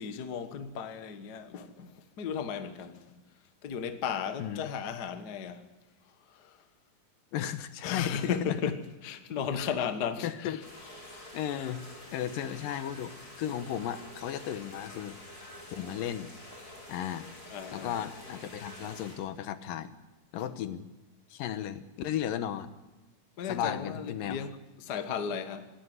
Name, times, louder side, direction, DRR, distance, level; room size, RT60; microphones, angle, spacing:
voice 1, 0.0-3.0 3.6-5.6 6.3-6.6 7.8-10.6 17.5-18.0 23.4-24.5 24.8-25.7, left 7 dB, 55° left, 1.1 m, -35 dB
voice 2, 7.3-8.4 10.2-10.6 11.3-11.8 12.1-15.2 15.7-16.3 16.9-17.3 17.7-19.9 20.3-20.8 21.3-22.7 23.5-24.4, left 10 dB, 80° left, 2.7 m, -35 dB
sound 1, 10.6-19.2, left 1 dB, 30° left, 5.4 m, -48 dB
26.0 x 11.5 x 9.5 m
omnidirectional pair, 4.0 m